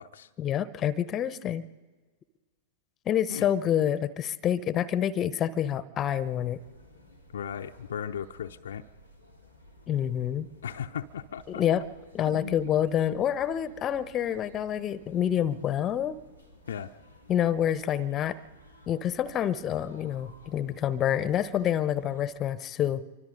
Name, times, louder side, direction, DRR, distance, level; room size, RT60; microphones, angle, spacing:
voice 1, 0.4-1.6 3.1-6.6 9.9-10.5 11.5-11.9 12.1-16.2 17.3-18.4 18.9-23.0, left 10 dB, 25° left, 17 dB, 0.9 m, -27 dB
sound 1, 6.0-22.3, left 1 dB, 90° right, 2.9 m, -55 dB
voice 2, 7.3-8.8 10.6-11.8 12.3-12.6 16.7-16.9, left 8 dB, 65° left, 6 dB, 0.6 m, -37 dB
27.5 x 24.5 x 3.9 m, 1.4 s
figure-of-eight pair, 95°, 0 cm